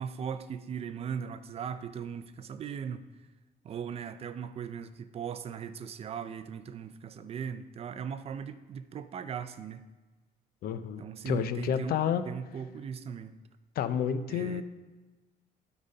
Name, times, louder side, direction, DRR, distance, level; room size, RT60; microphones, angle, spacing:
voice 1, 0.0-3.1 3.6-9.8 11.0-12.0 12.3-13.3 14.3-14.6, right 7 dB, 40° right, 12 dB, 0.4 m, -38 dB
voice 2, 10.6-12.2 13.8-14.6, left 8 dB, 75° left, 11 dB, 0.5 m, -30 dB
11.5 x 4.0 x 5.3 m, 1.2 s
cardioid pair, 160°, 16 cm